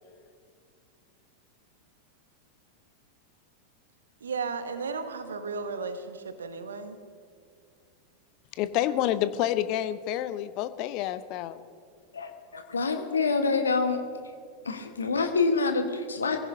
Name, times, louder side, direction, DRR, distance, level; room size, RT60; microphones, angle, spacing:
voice 1, 4.2-7.0, right 4 dB, 70° right, 9 dB, 1.2 m, -34 dB
voice 2, 8.6-11.6, left 12 dB, 40° left, 13 dB, 0.7 m, -28 dB
voice 3, 12.1-14.0 14.6-16.4, left 4 dB, 70° left, 6 dB, 1.4 m, -26 dB
22.5 x 16.0 x 2.8 m, 2.2 s
figure-of-eight pair, 90°, 0 cm